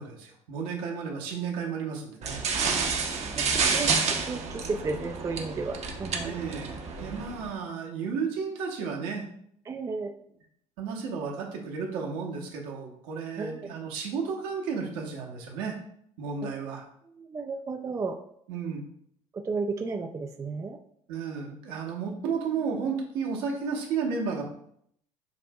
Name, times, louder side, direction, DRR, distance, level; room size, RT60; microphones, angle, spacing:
voice 1, 0.0-2.4 6.2-9.3 10.8-15.8 16.2-16.8 18.5-18.9 21.1-24.4, right 5 dB, 60° right, 1 dB, 1.0 m, -33 dB
sound 1, 2.2-7.5, right 5 dB, 40° right, 0.8 m, -29 dB
voice 2, 3.4-6.4 9.7-10.1 13.4-13.7 16.4-16.5 17.2-18.2 19.3-20.8, right 4 dB, 20° right, 5 dB, 0.4 m, -34 dB
7.0 x 2.6 x 2.3 m, 0.68 s
figure-of-eight pair, 60°, 17 cm